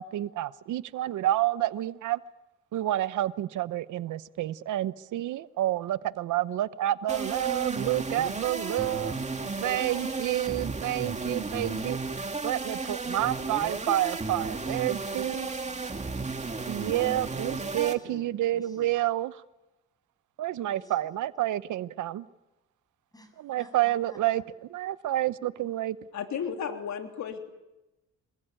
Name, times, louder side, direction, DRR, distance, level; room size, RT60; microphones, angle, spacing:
voice 1, 0.0-2.2 2.7-9.2 9.6-12.0 12.4-15.5 16.7-19.4 20.4-22.2 23.4-24.4 24.7-26.0, right 14 dB, 80° right, 15 dB, 1.0 m, -29 dB
sound 1, 7.1-17.9, right 3 dB, 25° right, 2.5 m, -33 dB
voice 2, 8.5-10.4 15.1-15.8 17.3-19.0 20.7-21.2 23.1-24.5, equal, 10° left, 6 dB, 7.7 m, -52 dB
voice 3, 26.1-27.5, left 7 dB, 70° left, 4 dB, 3.3 m, -34 dB
27.0 x 23.0 x 8.9 m, 0.99 s
cardioid pair, 90°, 30 cm